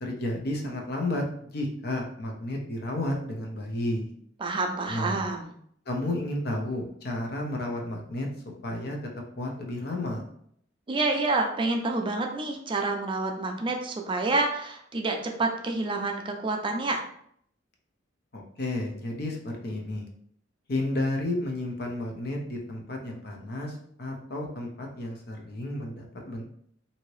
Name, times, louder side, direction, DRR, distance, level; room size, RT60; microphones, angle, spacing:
voice 1, 0.0-4.1 4.9-5.3 5.9-8.3 8.6-9.0 9.4-10.2 18.3-20.0 20.7-26.4, left 1 dB, 55° left, 1 dB, 0.6 m, -32 dB
voice 2, 4.4-5.5 10.9-17.0, right 3 dB, 25° right, 3 dB, 0.4 m, -28 dB
2.8 x 2.7 x 3.0 m, 0.66 s
head